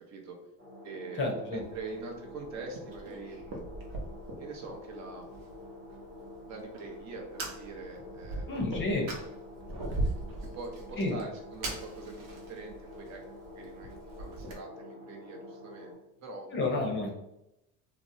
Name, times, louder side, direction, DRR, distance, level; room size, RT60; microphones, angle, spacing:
voice 1, 0.1-0.4 0.8-3.4 4.4-5.3 6.5-8.7 10.4-15.9 16.2-16.9, right 3 dB, 50° right, 2 dB, 0.6 m, -44 dB
sound 1, 0.6-15.9, left 2 dB, 30° right, 1.0 m, -48 dB
voice 2, 1.2-1.6 8.5-9.1 11.0-11.2 16.5-17.1, left 2 dB, 30° left, 1 dB, 0.6 m, -30 dB
Fire, 1.6-14.6, right 2 dB, 75° right, 0.8 m, -41 dB
2.7 x 2.0 x 2.5 m, 0.87 s
cardioid pair, 125°, 37 cm